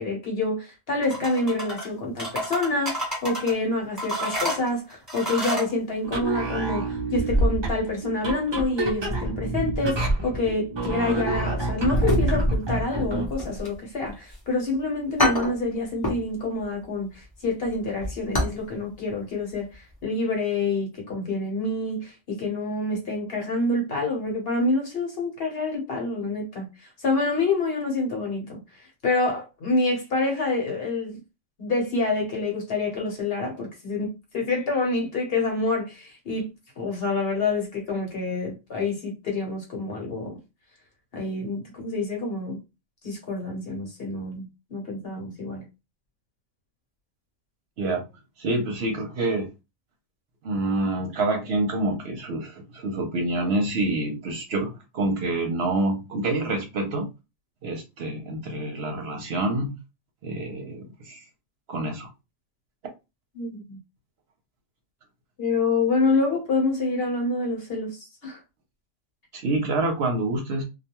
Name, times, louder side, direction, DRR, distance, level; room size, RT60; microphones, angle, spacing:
voice 1, 0.0-31.2 31.6-40.4 41.1-42.6 43.0-45.7 63.3-63.8 65.4-68.4, left 3 dB, 55° left, 1.0 m, -27 dB
sound 1, 1.0-1.9 2.2-3.5 4.0-5.7, equal, 15° right, 1.2 m, -30 dB
sound 2, 6.0-13.4, right 2 dB, 45° right, 0.3 m, -26 dB
sound 3, 11.9-12.7 13.0-14.4 14.8-14.9 15.2-16.3 16.6-16.8 17.2-18.7 18.9-19.0 19.5-19.8 20.0-20.1, left 1 dB, 25° left, 0.6 m, -28 dB
voice 2, 48.4-49.5 50.4-57.1 57.6-59.8 60.2-61.2 61.7-62.1 69.3-70.6, right 2 dB, 60° right, 0.8 m, -27 dB
2.3 x 2.2 x 2.9 m
omnidirectional pair, 1.3 m